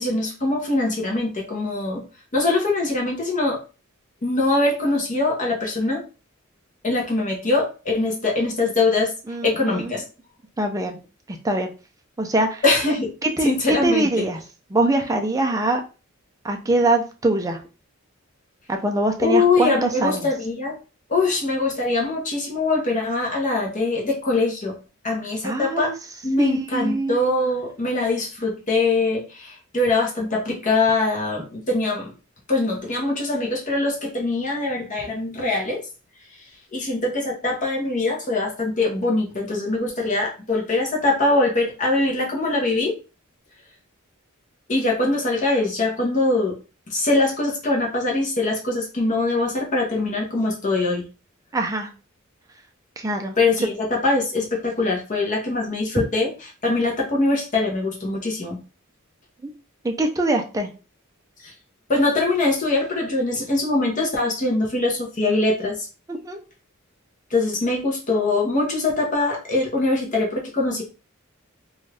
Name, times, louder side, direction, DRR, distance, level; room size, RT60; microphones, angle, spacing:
voice 1, 0.0-2.0 2.3-3.6 4.2-6.0 6.8-9.1 9.4-10.0 12.6-13.1 13.4-14.3 19.2-20.8 21.1-24.8 25.0-25.9 26.2-32.1 32.5-35.8 36.7-42.9 44.7-46.6 46.9-51.1 53.4-56.3 56.6-58.6 61.4-61.5 61.9-65.9 67.3-70.8, left 2 dB, 35° left, -1 dB, 0.8 m, -22 dB
voice 2, 9.3-9.9 10.6-11.0 11.3-11.7 12.2-12.6 13.2-14.4 14.7-15.8 16.4-17.6 18.7-20.3 25.4-25.9 26.4-27.2 51.5-51.9 53.0-53.7 59.4-59.5 59.8-60.7 66.1-66.4, right 2 dB, 15° right, 3 dB, 0.4 m, -23 dB
2.6 x 2.3 x 3.2 m, 0.33 s
head